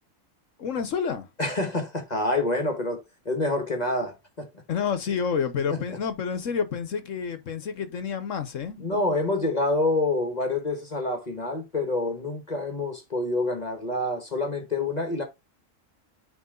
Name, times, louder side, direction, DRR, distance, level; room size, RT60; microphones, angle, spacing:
voice 1, 0.6-1.3 4.7-8.9, left 6 dB, 70° left, 1.3 m, -29 dB
voice 2, 1.4-4.5 5.7-5.8 8.8-15.2, left 2 dB, 30° left, 1.4 m, -27 dB
9.4 x 3.4 x 3.8 m
omnidirectional pair, 1.4 m